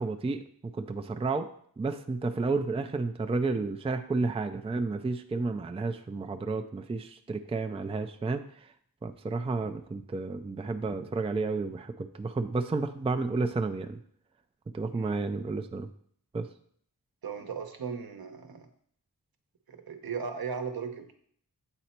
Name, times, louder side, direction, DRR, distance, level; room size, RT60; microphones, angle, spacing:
voice 1, 0.0-8.7 9.0-14.0 14.7-15.9 16.3-16.5, right 3 dB, 15° right, 7 dB, 0.4 m, -31 dB
voice 2, 14.9-15.2 17.2-18.7 19.7-21.2, right 6 dB, 70° right, 6 dB, 0.9 m, -37 dB
7.9 x 4.1 x 4.3 m, 0.63 s
wide cardioid pair, 70°, 38 cm